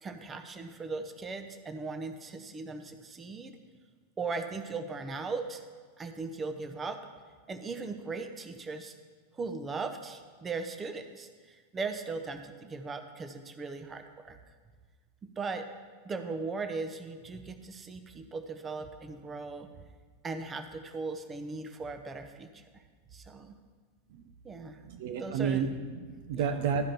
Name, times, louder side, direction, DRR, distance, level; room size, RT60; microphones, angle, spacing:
voice 1, 0.0-3.6 4.2-5.6 6.0-7.0 7.5-8.9 9.3-14.4 15.2-15.7 16.0-19.7 20.2-22.6 23.1-23.5 24.4-24.8 25.2-25.6 26.3-26.6, right 4 dB, 20° right, 7 dB, 0.8 m, -38 dB
voice 2, 24.9-26.9, right 6 dB, 50° right, 7 dB, 0.5 m, -31 dB
12.5 x 5.1 x 5.8 m, 1.5 s
figure-of-eight pair, 90°, 0 cm